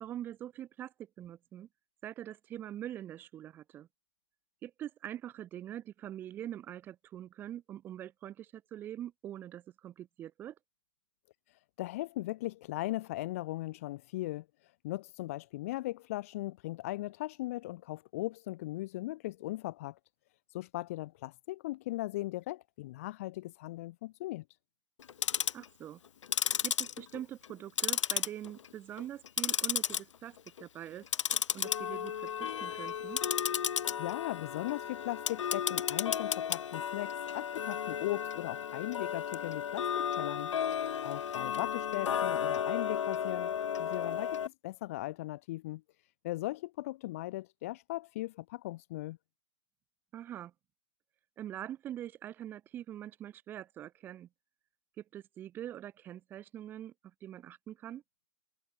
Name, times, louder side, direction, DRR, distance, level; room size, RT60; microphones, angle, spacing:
voice 1, 0.0-1.7 2.0-3.9 4.6-10.6 25.5-26.0 26.6-31.0 31.5-33.2 50.1-50.5 51.4-54.3 55.0-56.9 57.2-58.0, right 11 dB, 10° right, 3.3 m, -44 dB
voice 2, 11.5-20.0 20.5-24.4 34.0-40.5 41.0-43.5 43.8-45.8 46.2-49.2, left 17 dB, 25° left, 1.3 m, -38 dB
Tick-tock, 25.0-25.7 26.2-27.5 27.8-28.7 29.0-30.0 30.4-30.6 31.1-44.5, left 8 dB, 70° left, 1.5 m, -33 dB
hypercardioid pair, 180°, 16 cm